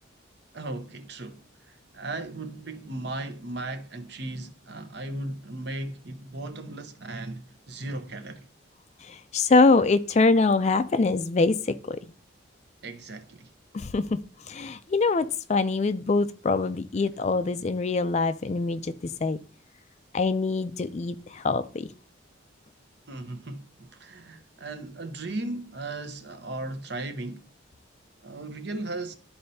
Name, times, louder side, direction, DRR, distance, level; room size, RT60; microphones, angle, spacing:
voice 1, 0.5-8.5 12.8-13.5 23.1-27.5 28.2-29.1, right 2 dB, 55° right, 0.8 m, -36 dB
voice 2, 9.0-12.0 13.7-19.4 20.1-21.9, left 3 dB, 35° left, 0.4 m, -24 dB
12.0 x 4.3 x 2.7 m
head